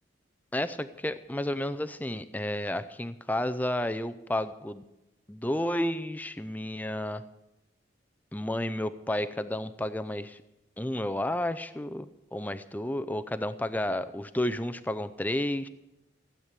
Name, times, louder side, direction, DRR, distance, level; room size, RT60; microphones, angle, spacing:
voice 1, 0.5-4.8 5.3-7.2 8.3-10.4 10.8-15.7, left 1 dB, 10° left, 12 dB, 0.5 m, -31 dB
15.5 x 9.0 x 8.2 m, 0.94 s
head